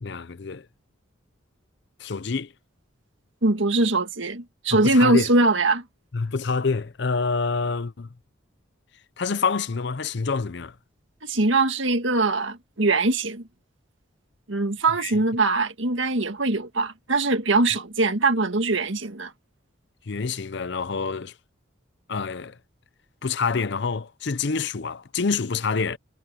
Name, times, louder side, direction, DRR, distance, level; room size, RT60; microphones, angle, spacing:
voice 1, 0.0-0.7 2.0-2.5 4.7-5.3 6.1-8.1 9.2-10.7 15.0-15.1 20.1-21.3 22.1-22.6 23.2-26.0, left 4 dB, 55° left, 0.6 m, -27 dB
voice 2, 3.4-5.8 11.2-13.4 14.5-19.3, right 2 dB, 70° right, 1.7 m, -22 dB
head